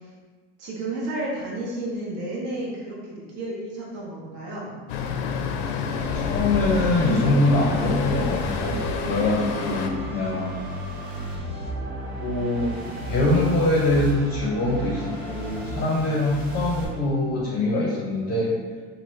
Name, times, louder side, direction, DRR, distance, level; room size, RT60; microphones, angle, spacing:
voice 1, 0.6-4.8, right 1 dB, 55° right, -5 dB, 1.1 m, -32 dB
Traffic noise roadway noise, 4.9-9.9, left 5 dB, 75° left, 0.5 m, -28 dB
sound 1, 5.8-16.9, right 1 dB, 30° right, 1.2 m, -34 dB
voice 2, 6.1-10.6 12.2-12.8 13.1-18.6, left 2 dB, 30° left, -3 dB, 0.6 m, -23 dB
3.0 x 2.4 x 3.0 m, 1.4 s
supercardioid pair, 115°, 31 cm